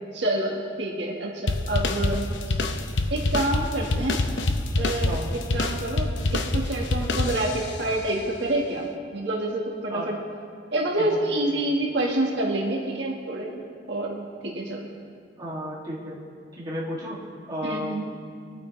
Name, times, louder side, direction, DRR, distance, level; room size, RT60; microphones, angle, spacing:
voice 1, 0.1-0.5 0.8-2.6 3.1-4.2 4.8-8.9 9.1-10.2 10.7-13.6 13.9-14.8 17.6-18.1, right 1 dB, 60° right, -2 dB, 1.6 m, -27 dB
sound 1, 1.5-7.8, left 2 dB, 70° left, 0.7 m, -26 dB
voice 2, 15.4-16.1 16.6-17.2 17.5-18.0, equal, 20° right, -6 dB, 2.2 m, -33 dB
23.0 x 8.9 x 3.2 m, 2.3 s
head